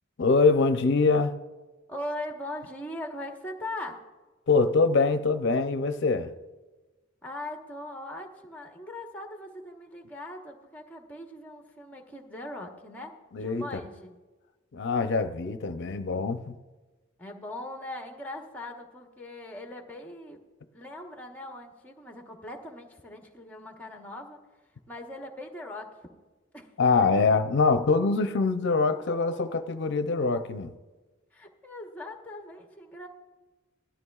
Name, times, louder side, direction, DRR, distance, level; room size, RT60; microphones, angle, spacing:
voice 1, 0.2-1.3 4.5-6.3 13.3-13.6 14.7-16.6 26.8-30.7, left 4 dB, 65° left, 0.6 m, -24 dB
voice 2, 1.9-4.1 7.2-14.1 17.2-20.4 20.7-24.4 24.9-26.0 26.5-26.7 31.3-33.1, left 1 dB, 10° left, 1.1 m, -40 dB
17.0 x 12.5 x 2.4 m
head